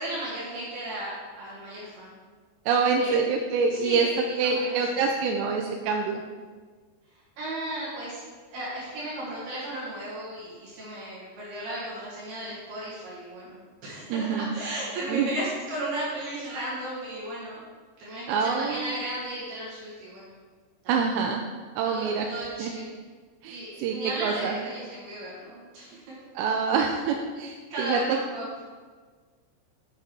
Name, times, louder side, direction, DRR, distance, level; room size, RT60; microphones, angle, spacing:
voice 1, 0.0-2.1 3.0-3.2 3.7-5.1 7.1-8.2 8.5-17.6 18.0-20.3 20.8-21.0 21.8-22.9 23.5-26.2 27.7-28.4, right 1 dB, 65° right, -8 dB, 3.6 m, -35 dB
voice 2, 2.7-4.1 4.4-6.2 14.1-14.5 15.1-15.3 18.3-18.9 20.9-21.4 21.8-22.3 22.6-22.7 23.4-24.6 26.4-28.2, right 5 dB, 85° right, 2 dB, 2.8 m, -26 dB
7.6 x 7.3 x 4.6 m, 1.5 s
omnidirectional pair, 5.1 m